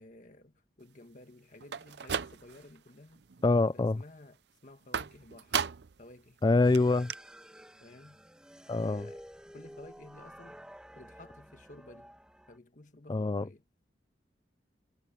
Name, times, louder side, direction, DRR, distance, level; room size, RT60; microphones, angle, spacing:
voice 1, 0.0-3.2 3.7-5.6 6.0-6.4 7.8-8.2 8.8-9.2 9.5-10.6 10.9-12.2 12.5-13.6, left 2 dB, 45° left, 1.5 m, -53 dB
sound 1, 1.6-2.8 3.2-3.7 4.9-6.0 6.4-6.5 6.7-6.8 7.1-7.2, right 7 dB, 65° right, 0.6 m, -35 dB
voice 2, 3.4-4.0 6.4-7.1 8.7-9.0 13.1-13.4, left 3 dB, 25° left, 0.3 m, -25 dB
sound 2, 6.6-12.6, equal, 5° right, 2.1 m, -51 dB
head